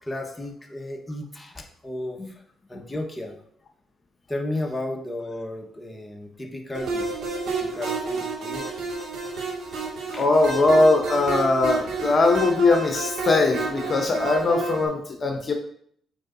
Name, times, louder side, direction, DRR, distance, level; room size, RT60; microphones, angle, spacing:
voice 1, 0.0-2.4 2.7-3.4 4.3-7.1 7.5-8.7 10.1-10.2, left 1 dB, 15° left, 1 dB, 1.5 m, -33 dB
sound 1, 6.7-14.9, right 3 dB, 65° right, 2.4 m, -30 dB
voice 2, 10.2-15.5, left 2 dB, 45° left, 3 dB, 1.0 m, -20 dB
8.4 x 4.8 x 2.8 m, 0.65 s
hypercardioid pair, 55°, 0 cm